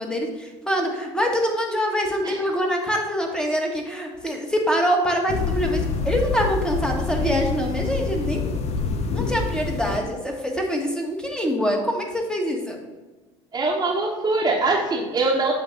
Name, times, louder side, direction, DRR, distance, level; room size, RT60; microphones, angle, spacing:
voice 1, 0.0-8.4 9.1-12.8, equal, 5° left, 1 dB, 1.4 m, -24 dB
sound 1, 5.3-10.0, left 5 dB, 45° left, 0.8 m, -26 dB
voice 2, 13.5-15.5, right 3 dB, 25° right, -6 dB, 1.2 m, -22 dB
7.7 x 2.6 x 5.9 m, 1.2 s
hypercardioid pair, 75°, 15 cm